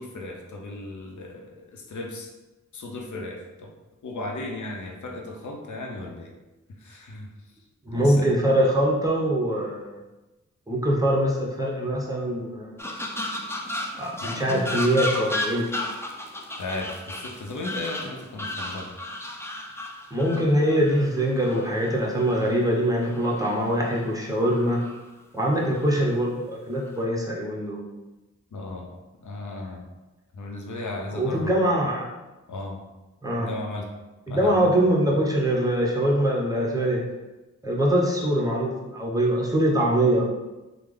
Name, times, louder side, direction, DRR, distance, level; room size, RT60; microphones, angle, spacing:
voice 1, 0.0-2.3 2.7-3.7 4.0-6.3 6.8-7.3 7.9-8.3 14.2-14.7 16.6-18.9 28.5-28.9 29.2-29.8 30.3-31.5 32.5-32.8 33.3-33.9 34.3-34.7, left 2 dB, 80° left, 1 dB, 0.6 m, -35 dB
voice 2, 7.9-9.9 10.7-12.8 14.0-15.7 20.1-24.8 25.3-27.8 31.1-32.1 33.2-33.5 34.3-37.0 37.6-40.2, right 1 dB, 10° right, -3 dB, 0.8 m, -23 dB
sound 1, 12.8-22.6 23.0-24.1 24.4-25.0 25.5-26.1 26.7-27.0, left 1 dB, 10° left, 0.4 m, -34 dB
3.2 x 2.0 x 3.6 m, 1.1 s
cardioid pair, 55°, 29 cm